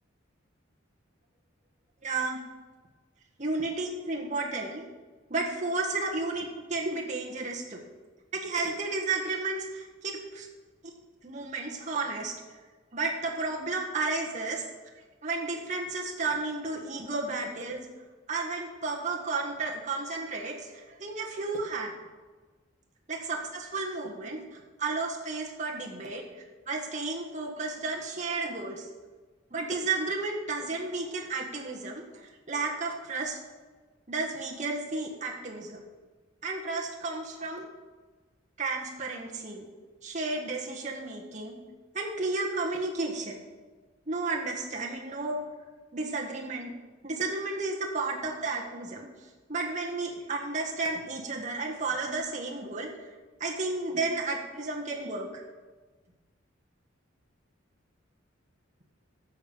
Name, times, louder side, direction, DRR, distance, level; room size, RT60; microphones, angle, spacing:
voice 1, 2.0-2.4 3.4-4.8 5.3-7.8 8.3-10.5 10.8-10.9 11.2-12.3 12.9-14.6 15.2-17.8 18.3-21.9 23.1-28.9 29.5-33.4 34.1-35.8 36.4-37.6 38.6-39.6 40.0-41.6 41.9-43.4 44.1-45.4 45.9-46.7 47.0-49.1 49.5-52.9 53.4-55.3, right 3 dB, 35° right, -1 dB, 1.5 m, -32 dB
12.0 x 7.1 x 5.6 m, 1.3 s
head